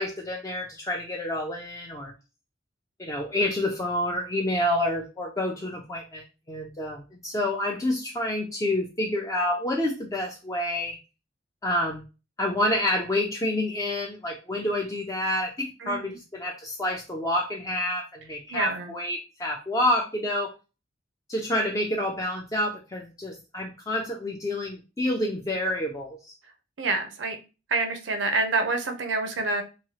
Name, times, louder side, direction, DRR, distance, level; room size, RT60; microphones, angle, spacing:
voice 1, 0.0-2.1 3.0-11.0 11.6-12.0 12.4-20.5 21.3-26.3, left 1 dB, 15° left, 0 dB, 0.3 m, -28 dB
voice 2, 15.8-16.2 18.5-18.9 26.8-27.4 27.7-29.6, right 3 dB, 80° right, 6 dB, 0.6 m, -27 dB
2.9 x 2.3 x 2.8 m, 0.31 s
head